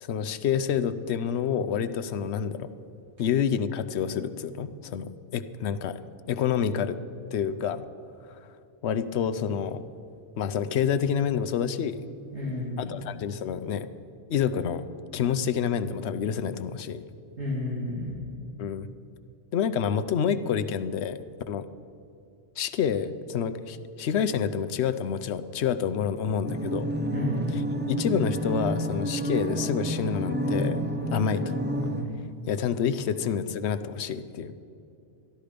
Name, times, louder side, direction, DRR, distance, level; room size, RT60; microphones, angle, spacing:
voice 1, 0.0-2.7 3.2-6.0 6.3-7.0 7.3-7.8 8.2-8.5 8.8-9.9 10.4-12.0 12.8-13.9 14.3-14.9 15.1-17.0 18.6-18.9 19.5-21.2 21.5-21.7 22.6-26.9 27.9-30.8 31.1-31.6 32.5-34.5, left 7 dB, 80° left, 12 dB, 0.9 m, -28 dB
voice 2, 12.3-13.0 17.4-18.1 27.1-27.3, left 1 dB, 85° right, -7 dB, 2.9 m, -31 dB
sound 1, 26.5-32.0, right 1 dB, 10° right, 0.6 m, -29 dB
13.0 x 12.0 x 5.0 m, 2.7 s
omnidirectional pair, 1.1 m